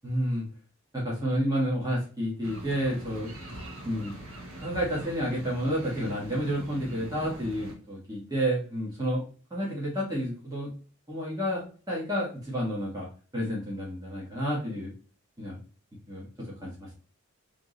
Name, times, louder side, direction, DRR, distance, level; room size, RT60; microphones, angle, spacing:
voice 1, 0.0-0.4 0.9-3.3 3.8-4.1 4.6-9.2 9.5-10.7 11.1-13.1 13.3-14.9 15.4-15.6 16.1-16.9, equal, 15° right, -6 dB, 1.4 m, -30 dB
sound 1, 2.4-7.7, right 1 dB, 65° right, 1.2 m, -42 dB
3.6 x 3.1 x 3.8 m, 0.39 s
head